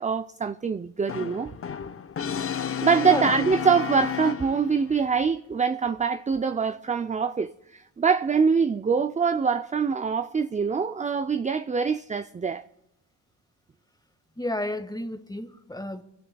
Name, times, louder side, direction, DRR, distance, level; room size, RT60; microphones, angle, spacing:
voice 1, 0.0-1.5 2.8-12.7, right 5 dB, 20° right, 0.5 m, -24 dB
Brass instrument, 1.1-4.9, left 8 dB, 35° left, 0.7 m, -31 dB
voice 2, 2.9-3.2 14.4-16.0, left 1 dB, 10° left, 1.7 m, -32 dB
24.0 x 16.0 x 2.3 m
supercardioid pair, 55°, 40 cm